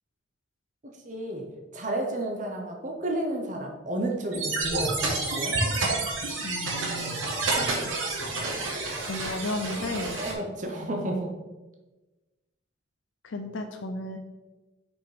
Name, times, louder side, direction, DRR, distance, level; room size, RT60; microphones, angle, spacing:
voice 1, 1.0-1.5 1.7-5.6 10.1-11.3, right 1 dB, 40° right, 1 dB, 1.0 m, -31 dB
sound 1, 4.3-10.3, right 2 dB, 80° right, 1.9 m, -29 dB
voice 2, 6.4-7.2 9.1-10.2 10.8-11.1 13.2-14.2, left 2 dB, 80° left, 5 dB, 0.6 m, -34 dB
5.9 x 5.4 x 5.0 m, 1.2 s
head